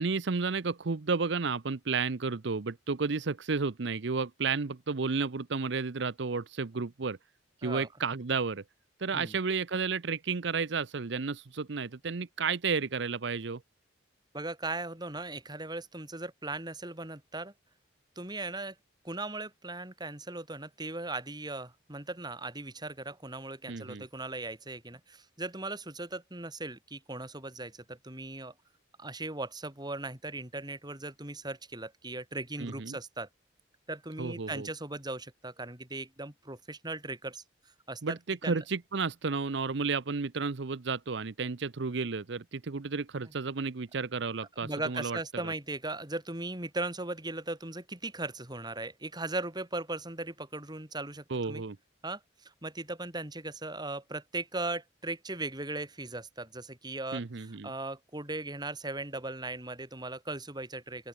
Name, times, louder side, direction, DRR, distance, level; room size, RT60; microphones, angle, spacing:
voice 1, 0.0-7.2 7.6-8.6 9.0-13.6 23.7-24.0 32.6-33.0 34.2-34.7 38.0-45.2 45.4-45.5 51.3-51.8 57.1-57.7, right 4 dB, 65° right, 0.7 m, -32 dB
voice 2, 14.3-17.5 18.2-18.8 19.0-28.5 29.0-33.3 33.9-37.4 37.9-38.2 38.4-38.6 43.3-43.4 44.6-51.6 52.0-61.1, right 2 dB, 20° right, 5.5 m, -38 dB
open air
head